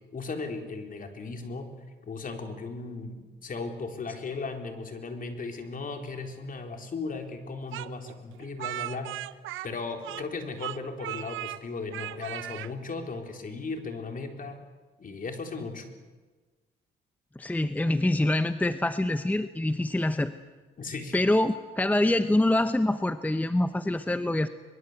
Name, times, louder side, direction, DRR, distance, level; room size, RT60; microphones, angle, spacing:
voice 1, 0.1-1.7 2.0-9.1 9.6-14.6 15.0-15.9 20.8-21.2, left 4 dB, 45° left, 5 dB, 4.0 m, -36 dB
Speech, 7.7-10.3 10.6-11.6 11.9-12.7, right 15 dB, 85° right, 0.8 m, -37 dB
voice 2, 17.4-20.3 21.1-24.5, left 1 dB, 10° left, 11 dB, 0.9 m, -25 dB
23.5 x 22.5 x 8.1 m, 1.3 s
cardioid pair, 90°, 20 cm